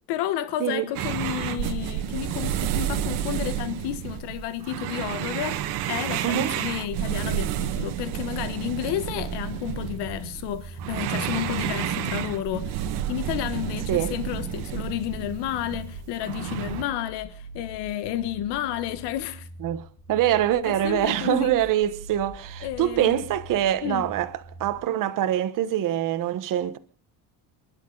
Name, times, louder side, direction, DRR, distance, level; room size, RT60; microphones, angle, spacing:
voice 1, 0.1-19.5 20.6-21.5 22.6-23.2 23.8-24.1, left 12 dB, 80° left, 1.3 m, -31 dB
sound 1, 0.9-16.8, right 11 dB, 90° right, 1.7 m, -30 dB
voice 2, 6.2-6.6 13.9-14.1 19.6-24.3 24.6-26.8, right 12 dB, 50° right, 1.3 m, -24 dB
sound 2, 9.7-24.7, right 1 dB, 5° left, 4.0 m, -43 dB
28.5 x 11.5 x 3.9 m
cardioid pair, 145°, 40 cm